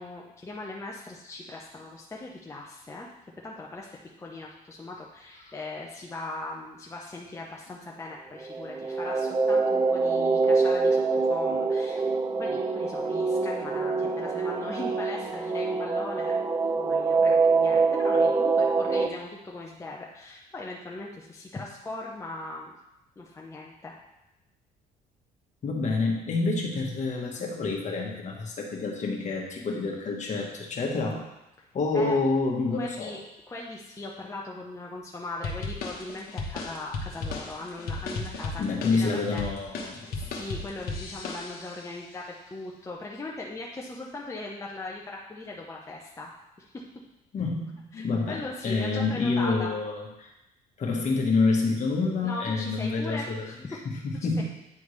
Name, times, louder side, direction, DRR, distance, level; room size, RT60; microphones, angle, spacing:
voice 1, 0.0-3.1 3.4-12.0 12.4-16.3 16.8-22.7 23.2-23.9 31.9-32.2 32.7-33.2 33.5-38.6 38.9-39.4 40.1-46.8 47.9-49.7 52.2-53.6 53.9-54.4, left 2 dB, 15° left, -2 dB, 0.7 m, -39 dB
sound 1, 8.4-19.1, right 4 dB, 20° right, 0.4 m, -25 dB
voice 2, 25.6-31.3 31.7-33.1 38.6-40.0 47.3-50.3 50.8-54.4, left 3 dB, 45° left, 0 dB, 1.4 m, -28 dB
sound 2, 35.4-41.9, left 3 dB, 65° left, 1.1 m, -35 dB
9.5 x 3.5 x 3.2 m, 0.92 s
cardioid pair, 110°, 17 cm